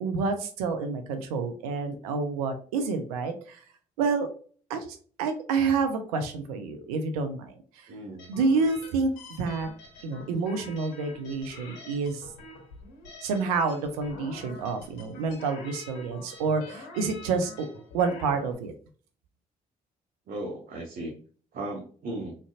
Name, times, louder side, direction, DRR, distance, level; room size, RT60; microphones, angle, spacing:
voice 1, 0.0-3.6 4.0-4.3 4.7-7.9 8.3-9.1 9.4-9.7 10.0-12.3 13.2-17.7 17.9-18.7, right 4 dB, 85° right, 7 dB, 0.6 m, -28 dB
voice 2, 7.9-8.3 20.3-21.1 21.5-22.4, right 1 dB, 55° right, -1 dB, 1.1 m, -36 dB
sound 1, 8.2-18.5, left 2 dB, 70° left, 1.3 m, -46 dB
3.7 x 3.3 x 2.4 m, 0.43 s
hypercardioid pair, 50°, 19 cm